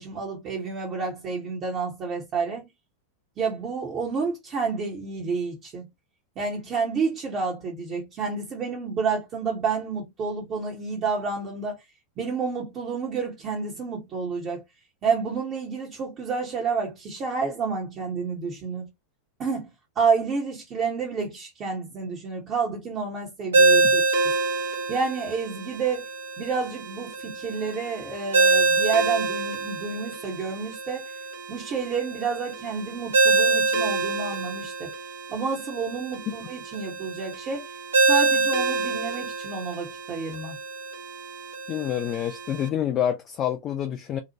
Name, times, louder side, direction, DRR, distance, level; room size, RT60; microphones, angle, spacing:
voice 1, 0.0-2.7 3.4-5.9 6.4-11.8 12.2-14.6 15.0-18.9 19.4-19.7 20.0-24.0 24.9-26.0 26.4-31.0 31.5-34.9 35.3-37.6 38.1-40.6, right 5 dB, 30° right, 0.7 m, -29 dB
Ringtone, 23.5-42.7, right 3 dB, 70° right, 0.7 m, -26 dB
voice 2, 41.7-44.2, left 10 dB, 30° left, 0.3 m, -27 dB
2.8 x 2.0 x 2.7 m
figure-of-eight pair, 90°, 0 cm